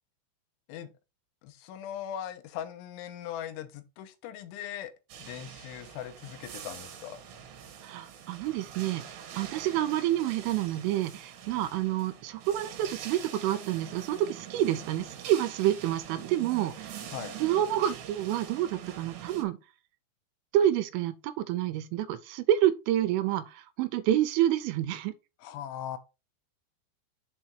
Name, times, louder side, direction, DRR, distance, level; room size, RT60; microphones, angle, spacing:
voice 1, 1.4-4.9 5.2-7.2 17.1-17.4 25.4-26.0, left 10 dB, 80° left, 3.2 m, -40 dB
sound 1, 5.1-19.4, right 9 dB, 70° right, 3.3 m, -44 dB
voice 2, 7.8-9.1 9.4-17.0 17.4-19.6 20.5-25.1, right 12 dB, 85° right, 3.2 m, -28 dB
7.6 x 2.9 x 5.8 m
omnidirectional pair, 5.5 m